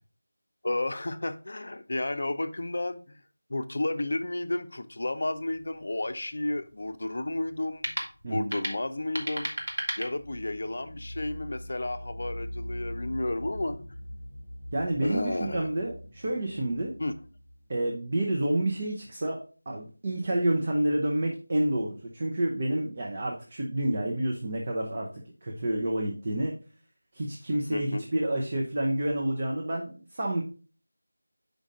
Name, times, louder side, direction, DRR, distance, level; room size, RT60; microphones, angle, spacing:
voice 1, 0.6-3.2 3.5-7.9 8.3-9.5 10.0-13.8 15.0-15.7 17.0-17.1 27.7-28.0, left 2 dB, 50° left, 0.6 m, -32 dB
sound 1, 5.3-10.7, right 1 dB, 60° right, 1.6 m, -37 dB
voice 2, 8.2-8.5 14.7-16.9 17.7-19.4 19.7-26.5 27.1-30.4, right 1 dB, 30° right, 0.8 m, -29 dB
sound 2, 10.1-18.8, equal, 80° right, 1.4 m, -42 dB
6.2 x 5.2 x 3.7 m
figure-of-eight pair, 170°, 0 cm